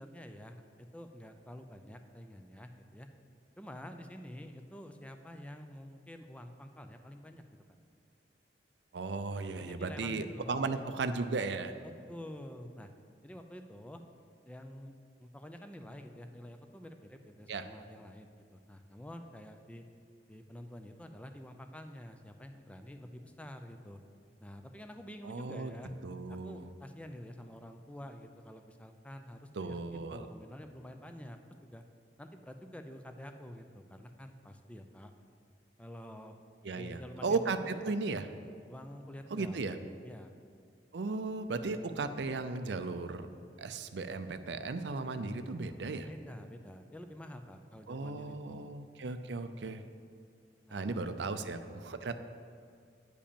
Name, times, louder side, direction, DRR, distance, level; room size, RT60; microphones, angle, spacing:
voice 1, 0.0-3.1 3.6-7.4 9.6-10.7 11.8-12.9 13.2-14.0 14.4-14.9 15.2-19.8 20.3-24.0 24.4-25.9 26.3-31.8 32.2-35.1 35.8-36.4 36.8-37.4 37.7-37.8 38.7-39.6 40.0-40.3 46.0-48.7 50.7-51.0, equal, 10° left, 6 dB, 0.5 m, -48 dB
voice 2, 8.9-11.8 17.5-17.7 25.2-25.7 26.0-26.7 29.5-30.3 36.6-38.3 39.3-39.8 40.9-43.3 43.6-46.1 47.9-49.8 50.7-52.2, right 3 dB, 75° right, 9 dB, 0.5 m, -36 dB
10.0 x 5.2 x 6.9 m, 2.3 s
head